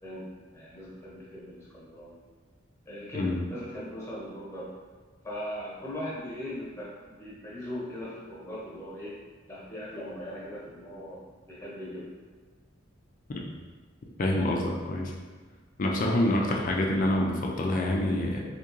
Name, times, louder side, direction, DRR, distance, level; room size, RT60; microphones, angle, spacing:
voice 1, 0.0-2.2 2.9-4.7 5.2-9.2 9.5-12.1, left 1 dB, 15° left, -7 dB, 1.1 m, -39 dB
voice 2, 14.2-15.1 15.8-18.4, left 1 dB, 45° left, -1 dB, 0.4 m, -26 dB
3.6 x 2.9 x 3.0 m, 1.4 s
head